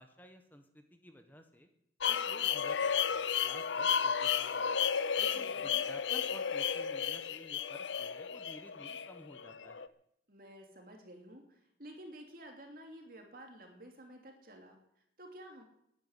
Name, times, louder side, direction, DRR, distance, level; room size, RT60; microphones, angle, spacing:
voice 1, 0.0-1.7 2.1-2.8 3.1-4.8 5.2-9.9, equal, 10° left, 6 dB, 1.3 m, -54 dB
sound 1, 2.0-9.9, left 7 dB, 85° left, 0.7 m, -33 dB
voice 2, 5.3-5.9 10.3-15.6, right 1 dB, 50° right, 2 dB, 3.0 m, -52 dB
12.5 x 10.0 x 9.8 m, 0.76 s
head